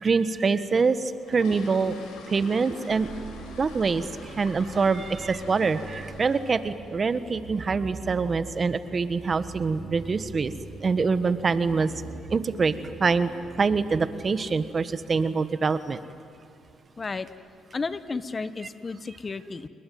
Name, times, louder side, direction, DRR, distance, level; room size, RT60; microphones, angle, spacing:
voice 1, 0.0-1.9 2.3-3.1 3.6-10.5 10.8-11.9 12.3-13.3 13.6-16.0, right 4 dB, 40° right, 12 dB, 1.4 m, -25 dB
sound 1, 1.0-6.8 7.0-7.3 7.7-7.8 8.1-8.3 8.7-8.9 9.1-9.2 9.8-9.9 10.2-10.3 10.9-11.2 11.4-11.5 11.9-12.2 12.5-12.6 13.0-13.1 13.7-14.0 14.4-14.7 15.0-15.1 15.6-15.7 16.4-16.6 17.0-17.5 17.9-18.0, left 2 dB, 85° left, 5.7 m, -46 dB
sound 2, 2.9-14.7, right 3 dB, 80° right, 4.2 m, -43 dB
voice 2, 17.0-17.3 17.7-19.7, left 4 dB, 30° left, 13 dB, 1.1 m, -33 dB
29.5 x 21.5 x 9.4 m, 2.4 s
cardioid pair, 80°, 0 cm